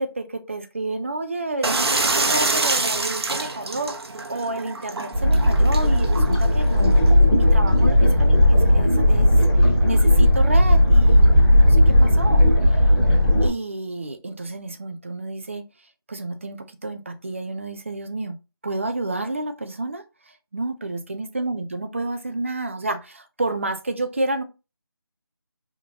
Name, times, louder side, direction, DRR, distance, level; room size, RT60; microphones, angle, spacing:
voice 1, 0.0-4.0 4.3-6.9 7.3-12.5 13.4-15.6 16.1-18.4 18.6-20.0 20.5-24.4, right 2 dB, 30° right, 0.5 m, -30 dB
sound 1, 1.6-7.1, right 3 dB, 85° right, 1.1 m, -26 dB
sound 2, 5.1-13.5, left 1 dB, 15° left, 1.3 m, -16 dB
5.3 x 3.6 x 2.8 m
figure-of-eight pair, 170°, 13 cm